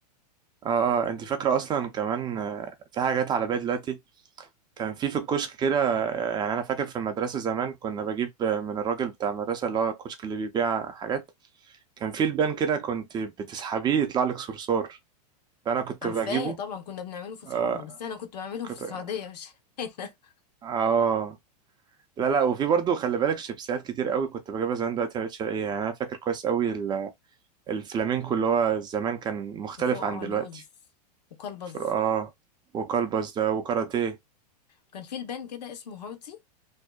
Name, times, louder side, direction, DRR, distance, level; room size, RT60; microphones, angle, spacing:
voice 1, 0.6-4.0 4.4-4.5 4.8-11.2 12.0-15.0 15.7-16.5 17.5-17.8 20.6-21.4 22.2-27.1 27.7-30.6 31.8-32.3 32.7-34.2, right 7 dB, 20° right, 0.4 m, -27 dB
voice 2, 16.0-20.3 29.8-30.6 31.4-31.8 34.9-36.4, left 7 dB, 80° left, 0.8 m, -37 dB
2.6 x 2.0 x 2.2 m
hypercardioid pair, 125°, 21 cm